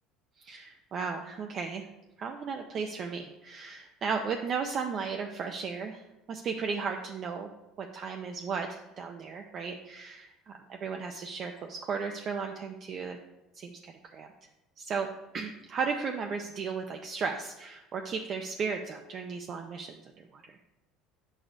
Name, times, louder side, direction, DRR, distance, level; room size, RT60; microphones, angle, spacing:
voice 1, 0.4-1.9 2.2-6.0 6.3-7.5 7.8-13.2 13.5-14.3 14.8-15.1 15.3-20.6, right 5 dB, 40° right, 3 dB, 0.5 m, -35 dB
8.8 x 6.2 x 2.6 m, 0.96 s
cardioid pair, 130°, 0 cm